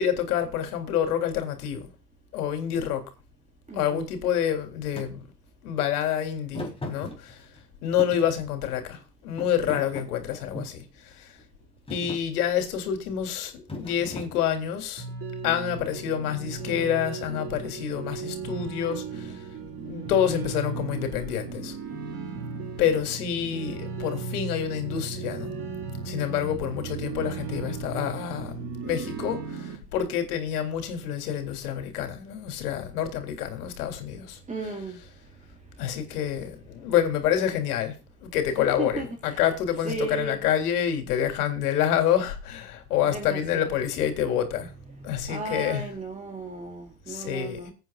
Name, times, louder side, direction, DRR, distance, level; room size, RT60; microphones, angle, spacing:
voice 1, 0.0-1.9 2.3-3.1 3.7-5.3 5.6-7.5 7.8-11.4 11.9-15.1 15.4-19.5 19.9-21.7 22.8-25.6 26.0-34.4 35.8-44.7 45.0-45.9 47.1-47.7, left 9 dB, 75° left, 3.6 m, -28 dB
voice 2, 3.7-4.1 25.1-25.9 26.2-26.6 27.5-27.8 34.5-35.0 38.6-39.1 39.8-40.4 43.0-43.7 45.3-47.7, right 3 dB, 15° right, 2.8 m, -35 dB
Thump thud, 5.0-5.1 6.5-7.6 8.0-9.0 9.4-10.8 11.4-11.6 11.9-12.3 13.7-14.8, left 2 dB, 10° left, 4.1 m, -38 dB
sound 1, 15.0-29.8, right 4 dB, 30° right, 6.2 m, -36 dB
23.0 x 9.0 x 2.5 m
hypercardioid pair, 105°, 46 cm